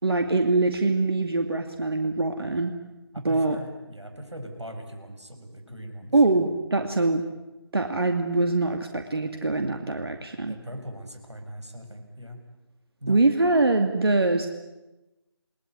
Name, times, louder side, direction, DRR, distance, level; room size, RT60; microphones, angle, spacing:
voice 1, 0.0-2.7 3.2-3.6 6.1-7.2 7.7-10.6 13.1-14.5, right 2 dB, 60° right, 5 dB, 2.5 m, -23 dB
voice 2, 3.1-6.2 10.4-12.4 13.0-13.2, equal, 90° right, 5 dB, 7.4 m, -40 dB
29.0 x 20.0 x 9.6 m, 1.1 s
figure-of-eight pair, 160°, 14 cm